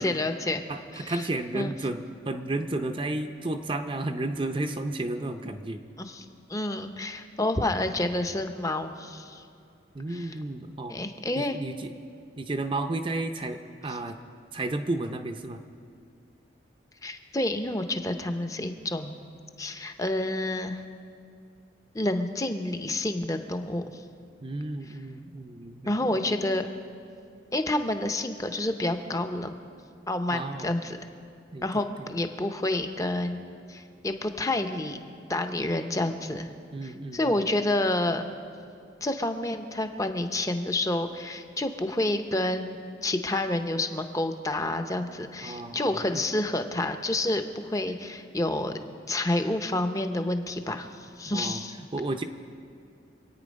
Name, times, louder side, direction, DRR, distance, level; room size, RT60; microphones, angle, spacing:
voice 1, 0.0-0.6 0.9-1.3 1.5-1.7 6.0-6.2 6.5-9.4 10.1-10.4 10.9-11.6 13.9-14.0 17.0-19.2 19.6-20.8 21.9-24.0 25.9-26.7 27.5-29.5 30.1-31.0 31.6-33.4 33.7-35.0 35.3-36.5 36.8-38.3 39.0-48.7 49.1-51.8, left 1 dB, 15° left, 7 dB, 0.7 m, -29 dB
voice 2, 0.7-5.8 9.9-11.0 11.4-11.9 12.4-14.2 14.5-15.6 24.4-26.1 30.3-30.7 31.5-31.8 36.7-37.5 45.4-46.2 51.3-52.2, right 2 dB, 25° right, 5 dB, 0.6 m, -32 dB
26.5 x 9.1 x 5.2 m, 2.4 s
head